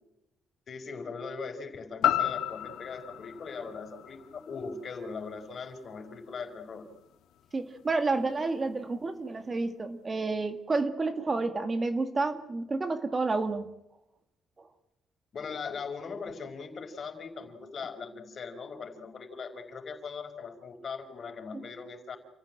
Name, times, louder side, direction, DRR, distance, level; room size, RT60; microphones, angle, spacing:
voice 1, 0.7-6.9 15.3-22.2, left 5 dB, 40° left, 5 dB, 5.2 m, -40 dB
sound 1, 2.0-6.1 6.6-6.7, left 12 dB, 80° left, 2.0 m, -33 dB
voice 2, 7.5-13.6 14.6-14.7 21.5-21.6, right 3 dB, 25° right, 8 dB, 1.9 m, -30 dB
29.0 x 15.0 x 9.0 m, 0.87 s
cardioid pair, 145°, 0 cm